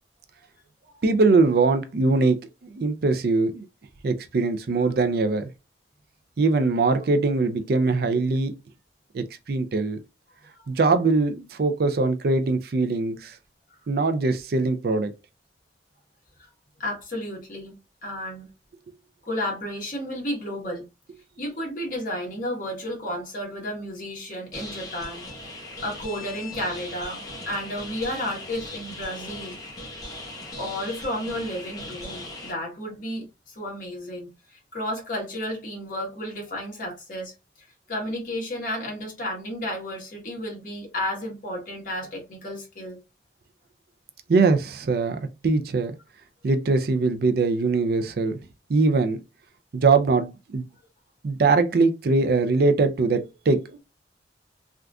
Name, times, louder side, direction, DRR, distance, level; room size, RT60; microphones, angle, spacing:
voice 1, 1.0-2.4 2.7-3.7 4.0-5.5 6.4-8.5 9.1-10.0 10.7-13.4 13.9-15.1 44.3-45.9 46.4-48.4 48.7-49.2 49.7-50.7 51.2-53.8, right 3 dB, 55° right, 0.4 m, -22 dB
voice 2, 16.8-18.5 19.3-20.8 21.4-25.2 25.8-29.6 30.6-43.0, left 1 dB, 45° left, 1.4 m, -32 dB
sound 1, 24.5-32.5, left 2 dB, 20° left, 0.8 m, -39 dB
3.4 x 2.5 x 2.3 m
head